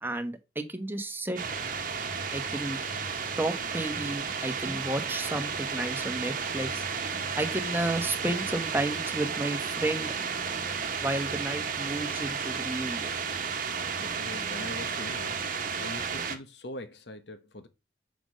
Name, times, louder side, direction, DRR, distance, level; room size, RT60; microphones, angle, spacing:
voice 1, 0.0-1.4 2.3-2.8 3.4-6.8 7.3-10.1 11.0-13.1, right 1 dB, 10° right, 1.1 m, -32 dB
sound 1, 1.4-16.4, right 6 dB, 50° right, 1.2 m, -33 dB
voice 2, 13.6-15.4 15.8-17.7, left 2 dB, 70° left, 1.1 m, -42 dB
6.1 x 5.2 x 6.3 m
head